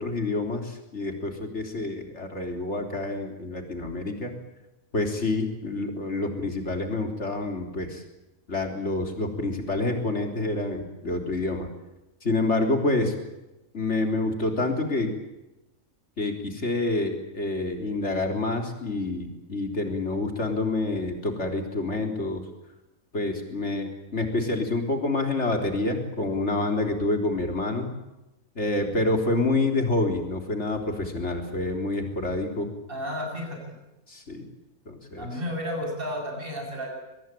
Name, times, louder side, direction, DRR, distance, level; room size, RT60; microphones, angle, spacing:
voice 1, 0.0-4.3 4.9-8.0 8.5-11.7 12.2-13.1 13.7-15.1 16.2-22.4 23.1-27.9 28.6-32.7 34.1-34.5 34.9-35.3, left 2 dB, 55° left, 4 dB, 4.0 m, -27 dB
voice 2, 32.9-33.8 35.2-36.9, equal, 40° right, 1 dB, 7.9 m, -32 dB
23.5 x 21.0 x 9.1 m, 0.98 s
omnidirectional pair, 1.4 m